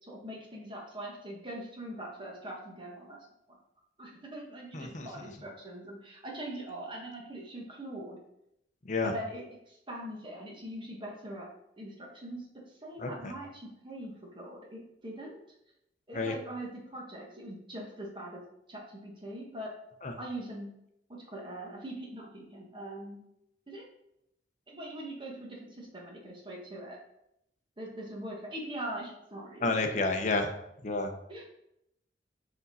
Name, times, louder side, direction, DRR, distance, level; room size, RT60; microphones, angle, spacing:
voice 1, 0.0-3.2 4.0-8.2 9.0-11.5 11.8-15.4 16.1-18.4 18.7-19.7 20.2-20.7 21.1-23.2 23.7-23.8 24.7-27.0 27.8-29.7 31.3-31.4, right 1 dB, 25° right, -2 dB, 1.4 m, -42 dB
voice 2, 4.7-5.1 8.8-9.1 13.0-13.3 16.1-16.3 20.0-20.1 29.6-30.5 30.8-31.1, left 3 dB, 40° left, 4 dB, 0.7 m, -30 dB
5.3 x 5.0 x 4.1 m, 0.81 s
head